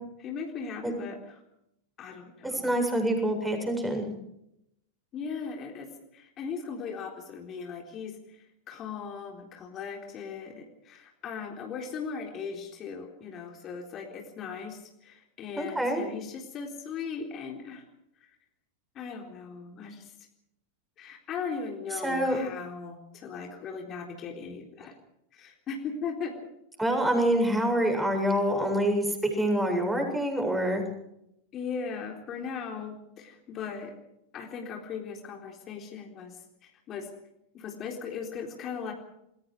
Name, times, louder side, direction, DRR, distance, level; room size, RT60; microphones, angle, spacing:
voice 1, 0.2-1.4 2.0-2.7 5.1-17.8 19.0-20.1 21.0-24.9 25.3-26.4 31.5-33.9 34.3-36.4 36.6-37.1 37.5-38.9, left 6 dB, 30° left, 2 dB, 4.0 m, -38 dB
voice 2, 2.4-4.0 15.6-16.0 22.0-22.4 26.8-30.8, right 1 dB, 5° right, 3 dB, 7.6 m, -26 dB
29.0 x 22.0 x 4.9 m, 0.81 s
figure-of-eight pair, 90°, 0 cm